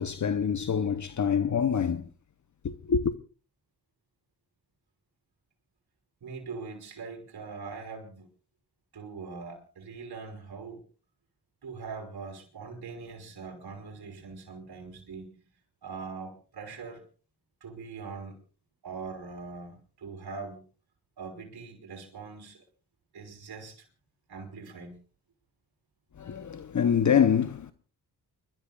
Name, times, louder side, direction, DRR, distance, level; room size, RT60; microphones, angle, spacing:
voice 1, 0.0-2.1 2.6-3.1 26.2-27.7, left 7 dB, 50° left, 0.9 m, -26 dB
voice 2, 6.2-8.3 8.9-10.8 11.6-15.4 15.8-17.0 17.6-18.4 18.8-20.6 21.2-22.6 23.1-23.9 24.3-25.0, right 4 dB, 70° right, 4.8 m, -42 dB
29.5 x 12.5 x 2.5 m
cardioid pair, 75°, 39 cm